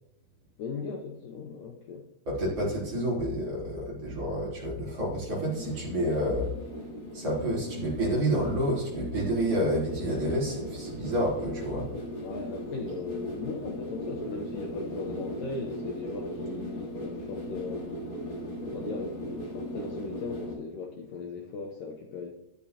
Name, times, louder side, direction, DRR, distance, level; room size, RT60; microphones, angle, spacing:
voice 1, 0.6-2.0 12.2-18.0 18.7-22.3, left 4 dB, 70° left, 2 dB, 2.1 m, -38 dB
voice 2, 2.3-6.5 7.1-11.9, equal, 35° right, -6 dB, 4.4 m, -29 dB
sound 1, 5.4-20.5, equal, 55° left, 4.9 m, -38 dB
12.0 x 10.5 x 2.8 m, 0.87 s
omnidirectional pair, 4.8 m